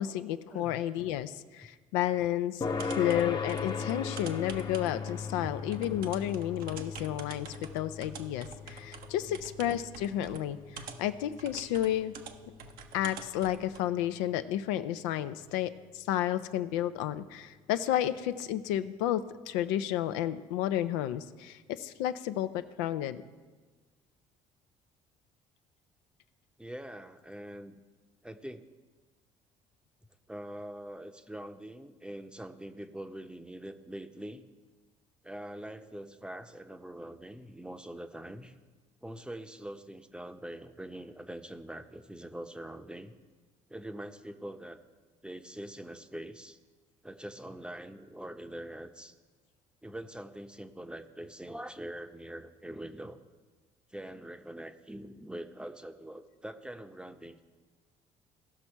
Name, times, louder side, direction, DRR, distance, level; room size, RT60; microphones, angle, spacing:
voice 1, 0.0-12.1 12.9-23.2, left 12 dB, 75° left, 11 dB, 0.5 m, -32 dB
sound 1, 2.6-17.5, left 4 dB, 25° left, 0.9 m, -40 dB
voice 2, 2.7-3.0 5.4-5.5 9.2-9.5 26.6-27.8 28.2-28.7 30.3-34.4 35.2-38.5 39.0-43.1 43.7-44.8 45.2-46.6 47.0-49.1 49.8-53.2 53.9-57.4, right 1 dB, 5° right, 8 dB, 0.8 m, -43 dB
sound 2, 2.7-13.8, right 6 dB, 65° right, 0.8 m, -48 dB
16.5 x 6.1 x 4.5 m, 1.4 s
hypercardioid pair, 60°, 16 cm